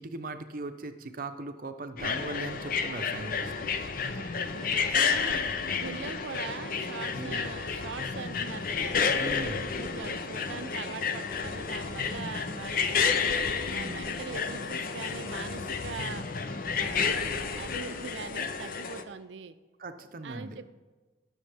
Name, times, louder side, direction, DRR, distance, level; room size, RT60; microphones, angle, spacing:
voice 1, 0.0-3.7 7.1-7.5 9.1-9.8 19.8-20.6, right 2 dB, 50° right, 8 dB, 0.7 m, -39 dB
sound 1, 2.0-19.0, left 5 dB, 50° left, 0.6 m, -31 dB
voice 2, 3.6-5.4 5.8-9.0 9.5-13.2 13.7-16.3 16.7-19.5 20.2-20.7, right 5 dB, 85° right, 12 dB, 0.5 m, -42 dB
18.5 x 6.4 x 3.4 m, 1.3 s
head